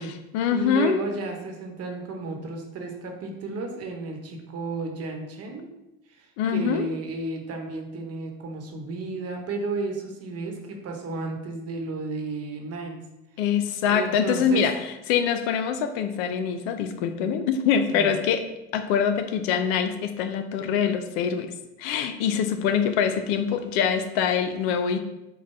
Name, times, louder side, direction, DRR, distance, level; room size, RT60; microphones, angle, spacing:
voice 1, 0.0-1.0 6.4-6.9 13.4-18.4 18.7-21.5 21.8-25.0, left 7 dB, 80° left, 8 dB, 0.5 m, -24 dB
voice 2, 0.5-5.7 6.1-13.0 13.9-14.6 17.9-18.1, right 3 dB, 45° right, 3 dB, 1.0 m, -33 dB
4.7 x 2.2 x 4.3 m, 0.93 s
supercardioid pair, 90°, 33 cm